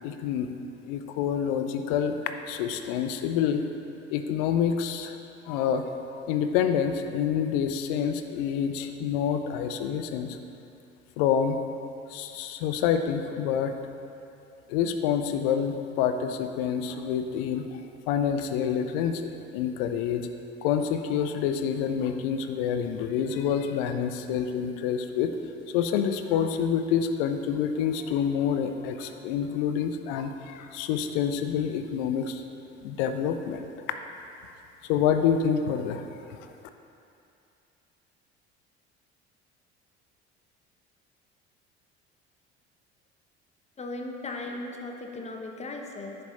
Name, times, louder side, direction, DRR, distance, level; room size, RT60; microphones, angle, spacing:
voice 1, 0.0-0.5 0.9-2.2 2.5-3.6 4.1-5.2 5.5-10.4 11.2-11.6 12.1-13.7 14.7-17.7 18.1-20.3 20.6-25.4 25.7-32.4 32.8-33.7 34.8-36.1, left 8 dB, 60° left, 8 dB, 0.6 m, -27 dB
voice 2, 43.8-46.3, left 2 dB, 20° left, 2 dB, 0.9 m, -37 dB
10.0 x 5.2 x 4.2 m, 2.7 s
figure-of-eight pair, 55°, 33 cm